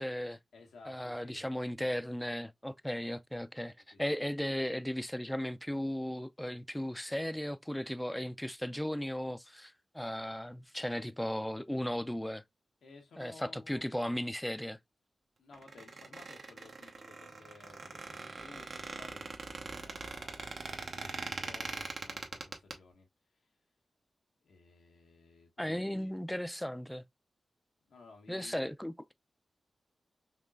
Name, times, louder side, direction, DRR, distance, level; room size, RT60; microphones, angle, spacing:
voice 1, 0.0-0.4 0.9-3.7 4.0-12.4 13.2-14.8 25.6-27.1 28.3-28.9, equal, 5° left, 0.4 m, -36 dB
voice 2, 0.5-1.4 3.9-4.0 12.8-14.1 15.4-23.1 23.4-23.5 24.4-26.1 27.9-28.7, left 3 dB, 90° left, 1.2 m, -56 dB
Squeak, 15.5-22.7, right 3 dB, 70° right, 0.9 m, -42 dB
5.4 x 3.0 x 2.3 m
cardioid pair, 45°, 0 cm